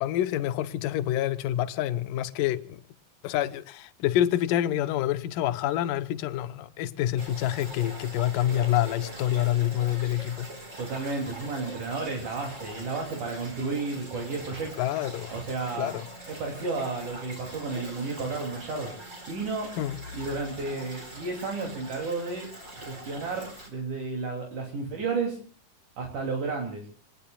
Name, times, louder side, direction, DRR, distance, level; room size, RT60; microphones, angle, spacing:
voice 1, 0.0-2.8 3.2-10.5 14.8-15.3 15.8-16.1 19.8-20.0, left 12 dB, 80° left, 2.5 m, -27 dB
sound 1, 7.2-23.7, right 1 dB, 20° right, 4.6 m, -43 dB
voice 2, 10.8-14.7 15.3-15.9 16.3-18.9 19.3-19.7 20.1-22.5 22.8-25.4 26.0-26.8, right 4 dB, 65° right, 4.5 m, -32 dB
28.5 x 20.5 x 2.4 m
omnidirectional pair, 3.9 m